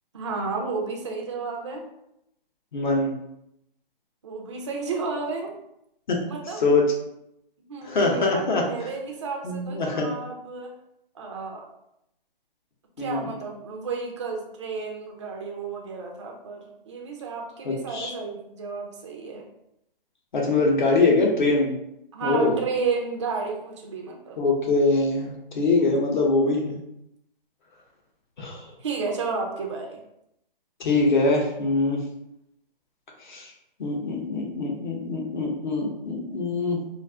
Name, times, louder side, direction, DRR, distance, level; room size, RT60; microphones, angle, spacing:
voice 1, 0.1-1.8 4.2-5.5 6.3-6.6 7.7-10.7 11.1-11.6 13.0-19.4 22.1-24.4 25.8-26.0 28.8-30.0, right 4 dB, 30° right, 0 dB, 0.4 m, -32 dB
voice 2, 2.7-3.1 6.1-6.2 6.6-6.8 7.8-8.6 9.4-10.1 13.0-13.3 17.6-18.1 20.3-21.7 22.2-22.6 24.4-26.8 28.4-28.7 30.8-32.0 33.2-33.5 33.8-36.9, left 3 dB, 55° left, 0 dB, 0.8 m, -23 dB
2.5 x 2.4 x 3.4 m, 0.80 s
hypercardioid pair, 155°, 29 cm